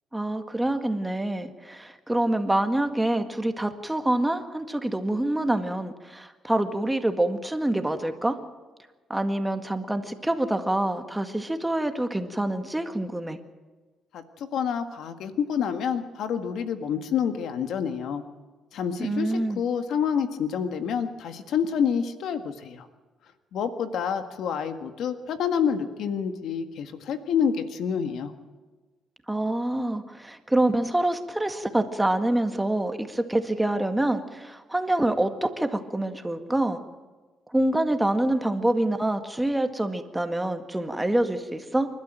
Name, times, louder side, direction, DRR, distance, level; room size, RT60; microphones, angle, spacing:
voice 1, 0.1-8.4 9.1-13.4 19.0-19.6 29.3-36.8 37.5-41.9, right 1 dB, 10° right, 7 dB, 1.9 m, -26 dB
voice 2, 14.1-18.2 18.7-22.9 23.5-28.3, left 7 dB, 75° left, 8 dB, 1.7 m, -28 dB
27.5 x 12.5 x 9.1 m, 1.3 s
cardioid pair, 90°, 0 cm